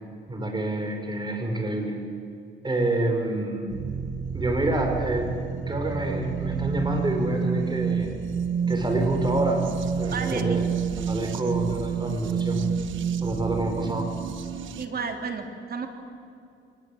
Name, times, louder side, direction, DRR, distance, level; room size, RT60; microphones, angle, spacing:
voice 1, 0.3-2.0 2.6-3.8 4.3-5.3 5.7-8.1 8.7-9.7 9.9-10.7 11.1-12.6 13.2-14.1, right 1 dB, 20° right, 3 dB, 5.7 m, -27 dB
sound 1, 3.7-14.9, right 7 dB, 75° right, 1.5 m, -29 dB
voice 2, 10.1-10.6 14.8-15.9, right 5 dB, 50° right, 5 dB, 3.6 m, -32 dB
24.0 x 21.0 x 8.8 m, 2.5 s
cardioid pair, 90°, 20 cm